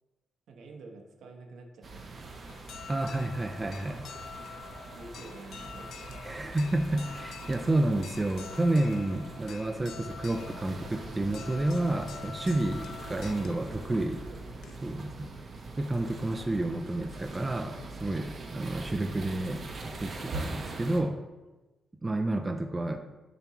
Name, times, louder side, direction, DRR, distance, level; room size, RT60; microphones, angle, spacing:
voice 1, 0.5-2.4 3.2-3.4 4.3-4.5 4.9-6.2 7.6-7.7 13.2-15.4, right 3 dB, 75° right, 2 dB, 1.0 m, -50 dB
sound 1, 1.8-21.0, right 3 dB, 40° right, 0.9 m, -43 dB
sound 2, 2.5-15.1, left 7 dB, 75° left, 0.3 m, -47 dB
voice 2, 2.9-4.1 6.2-14.2 14.8-15.3 15.8-21.2 22.0-23.0, right 2 dB, 15° right, 5 dB, 0.3 m, -30 dB
6.7 x 3.0 x 5.8 m, 1.1 s
wide cardioid pair, 155°, 0 cm